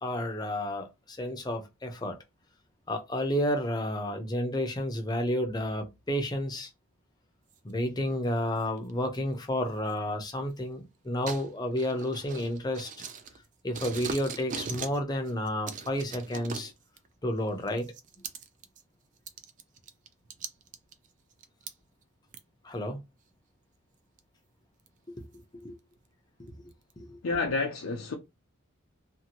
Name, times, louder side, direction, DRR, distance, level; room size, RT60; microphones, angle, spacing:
voice 1, 0.0-2.2 2.9-6.7 7.6-13.0 13.6-16.7 17.2-17.9 22.6-23.0 25.1-25.2 25.6-25.8 26.4-26.5 27.0-27.2, left 1 dB, 20° left, 0.6 m, -31 dB
sound 1, 7.5-7.7 8.6-9.2 9.9-10.0 11.3-13.5 13.7-15.0 15.3-17.1 17.7-18.8 19.2-21.7 22.3-22.4 23.0-23.1 24.2-24.3 24.9-25.0 25.3-25.4 26.0-26.1 26.5-26.9, right 6 dB, 35° right, 0.3 m, -40 dB
voice 2, 27.2-28.1, left 3 dB, 80° left, 0.5 m, -29 dB
2.7 x 2.5 x 2.8 m
head